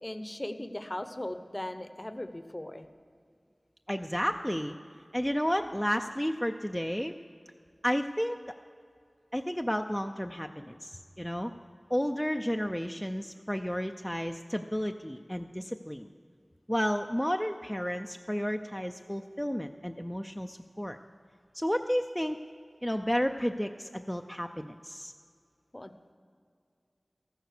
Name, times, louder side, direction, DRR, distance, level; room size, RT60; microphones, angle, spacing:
voice 1, 0.0-2.9 25.7-25.9, left 1 dB, 30° left, 9 dB, 0.7 m, -38 dB
voice 2, 3.9-4.8 5.1-7.1 7.8-8.4 9.3-11.5 11.9-16.1 16.7-21.0 21.5-22.4 22.8-25.1, equal, 5° left, 4 dB, 0.4 m, -32 dB
14.0 x 9.2 x 6.6 m, 2.2 s
wide cardioid pair, 55°, 0 cm